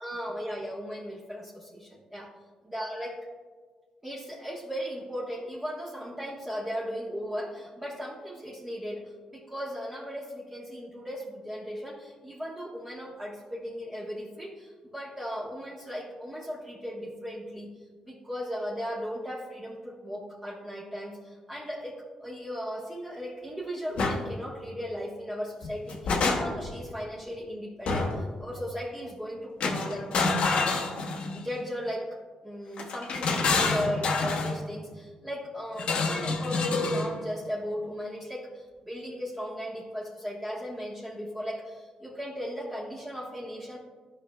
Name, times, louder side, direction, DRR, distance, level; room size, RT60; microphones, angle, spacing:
voice 1, 0.0-2.3 2.7-3.3 4.0-17.7 18.1-30.4 31.3-32.2 32.4-43.8, equal, 15° right, -6 dB, 1.4 m, -37 dB
sound 1, 24.0-24.2 25.6-26.7 27.9-28.3 29.6-31.5 32.8-34.6 35.8-37.1, left 3 dB, 75° left, 1.0 m, -27 dB
12.5 x 5.2 x 2.3 m, 1.5 s
cardioid pair, 75°, 2 cm